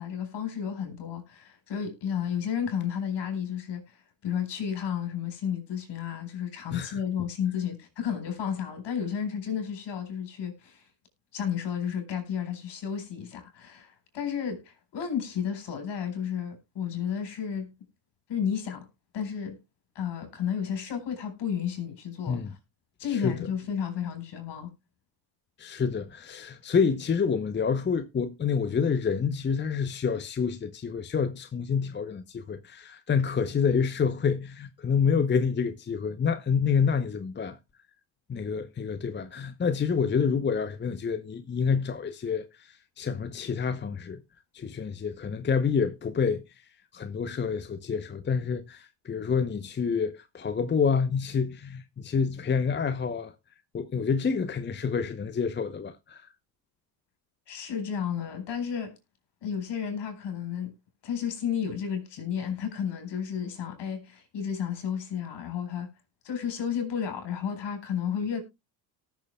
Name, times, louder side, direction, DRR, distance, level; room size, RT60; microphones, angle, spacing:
voice 1, 0.0-10.8 11.3-17.7 18.3-18.9 19.1-19.6 19.9-22.4 23.0-24.7 57.5-59.0 59.4-60.7 61.0-65.9 66.2-68.4, left 8 dB, 55° left, 4.4 m, -32 dB
voice 2, 6.7-7.0 22.3-22.5 23.1-23.4 25.6-37.6 38.3-44.2 44.5-46.4 46.9-53.3 53.7-56.3, left 6 dB, 20° left, 0.8 m, -28 dB
18.5 x 6.9 x 2.2 m
hypercardioid pair, 70°, 49 cm